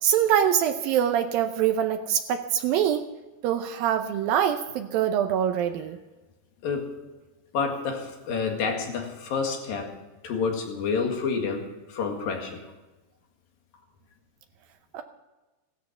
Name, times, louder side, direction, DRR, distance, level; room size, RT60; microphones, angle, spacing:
voice 1, 0.0-3.1 3.4-6.0 14.9-15.0, right 9 dB, 85° right, 7 dB, 2.0 m, -24 dB
voice 2, 7.5-9.9 10.2-12.6, left 5 dB, 60° left, 2 dB, 3.4 m, -29 dB
15.5 x 14.0 x 5.7 m, 1.1 s
omnidirectional pair, 5.1 m